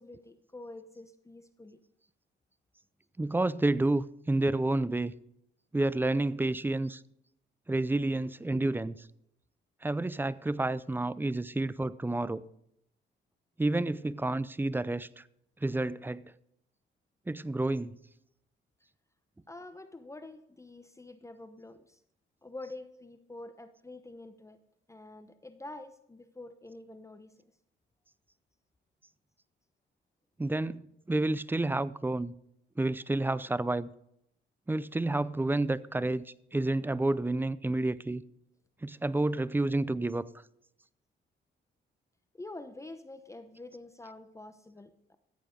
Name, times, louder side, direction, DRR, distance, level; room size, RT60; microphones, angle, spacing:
voice 1, 0.0-1.8 19.5-22.0 22.4-24.6 24.9-27.3 42.3-45.2, left 2 dB, 15° left, 0.9 m, -47 dB
voice 2, 3.2-5.1 5.7-7.0 7.7-9.1 9.8-12.4 13.6-15.2 15.6-16.3 17.3-17.9 30.4-32.4 32.8-33.9 34.7-38.2 38.8-40.3, right 2 dB, 10° right, 0.5 m, -30 dB
14.0 x 8.8 x 5.2 m
cardioid pair, 90°, 20 cm